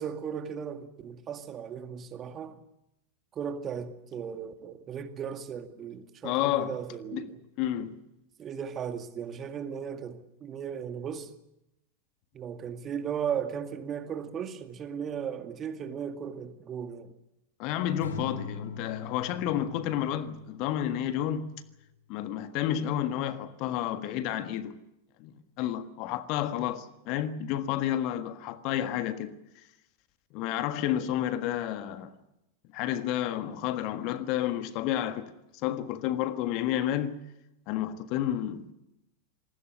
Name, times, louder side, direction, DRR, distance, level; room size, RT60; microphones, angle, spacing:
voice 1, 0.0-2.6 3.3-7.4 8.4-11.3 12.3-17.1, right 7 dB, 25° right, 2.2 m, -36 dB
voice 2, 6.2-6.7 7.1-7.3 7.6-8.0 17.6-21.5 22.1-24.8 25.2-29.3 30.3-32.1 32.7-35.3 35.6-37.2 37.7-38.7, left 11 dB, 40° left, 1.5 m, -30 dB
Acoustic guitar / Strum, 18.0-21.3, left 5 dB, 70° left, 3.5 m, -42 dB
27.5 x 20.0 x 6.8 m
figure-of-eight pair, 90°, 0 cm